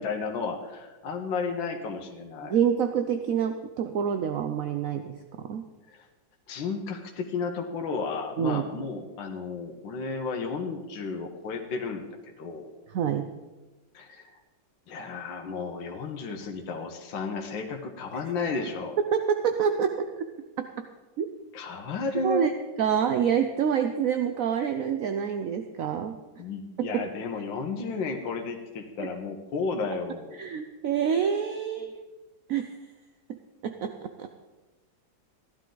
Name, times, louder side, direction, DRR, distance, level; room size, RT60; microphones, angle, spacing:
voice 1, 0.0-2.6 5.9-6.1 6.5-12.1 12.4-12.7 13.9-14.4 14.9-19.0 21.5-22.5 26.4-30.4, left 4 dB, 80° left, 3 dB, 1.9 m, -33 dB
voice 2, 2.4-5.6 8.4-8.6 12.9-13.3 19.1-20.3 20.6-20.7 21.2-21.3 22.2-22.5 22.8-26.1 26.8-27.1 30.3-32.1 32.5-32.8 33.6-34.3, right 8 dB, 70° right, 7 dB, 0.8 m, -27 dB
15.5 x 11.5 x 3.9 m, 1.2 s
omnidirectional pair, 2.1 m